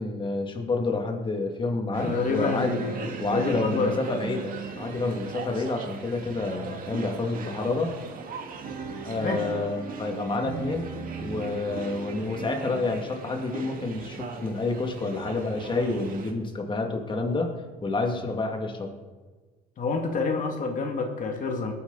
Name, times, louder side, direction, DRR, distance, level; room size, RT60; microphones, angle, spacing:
voice 1, 0.0-2.8 3.2-7.9 9.0-10.9 11.2-17.5 17.8-19.0, left 3 dB, 30° left, 3 dB, 2.4 m, -29 dB
sound 1, 1.9-16.3, right 5 dB, 55° right, 2.0 m, -37 dB
voice 2, 2.0-4.0 9.2-9.5 19.8-21.7, left 4 dB, 50° left, 3 dB, 2.3 m, -28 dB
22.0 x 9.7 x 4.1 m, 1.4 s
cardioid pair, 110°, 17 cm